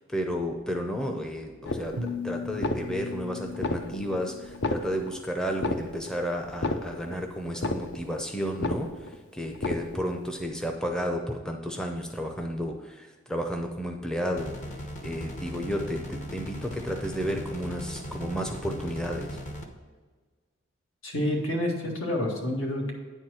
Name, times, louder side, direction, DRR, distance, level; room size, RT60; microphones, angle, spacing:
voice 1, 0.1-14.5 15.0-19.4, equal, 5° left, 3 dB, 0.5 m, -32 dB
sound 1, 1.6-2.2 2.5-3.2 3.5-4.2 4.5-5.2 5.5-6.2 6.5-7.2 7.5-8.2 8.5-9.2 9.5-10.2, left 2 dB, 55° left, 0.5 m, -32 dB
sound 2, 2.0-5.1, left 4 dB, 80° right, 0.5 m, -38 dB
sound 3, 14.4-19.7, equal, 35° left, 1.0 m, -38 dB
voice 2, 21.0-22.9, left 1 dB, 75° left, 0 dB, 1.9 m, -28 dB
9.5 x 4.5 x 6.3 m, 1.4 s
head